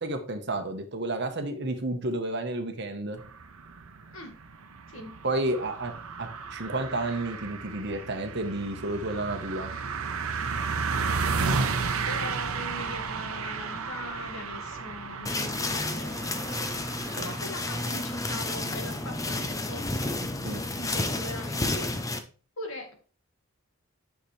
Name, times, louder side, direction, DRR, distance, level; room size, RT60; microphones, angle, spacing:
voice 1, 0.0-3.2 5.2-5.9 6.2-9.7 17.2-17.3 20.4-20.6, right 2 dB, 50° right, 6 dB, 1.1 m, -31 dB
sound 1, 3.2-21.8, right 4 dB, 70° right, 0.8 m, -34 dB
voice 2, 11.9-16.1 17.2-19.9 20.8-21.9 22.6-22.9, left 1 dB, 65° left, 3 dB, 1.9 m, -41 dB
sound 2, 15.3-22.2, left 2 dB, 15° left, 0.6 m, -31 dB
9.5 x 5.8 x 3.3 m, 0.40 s
head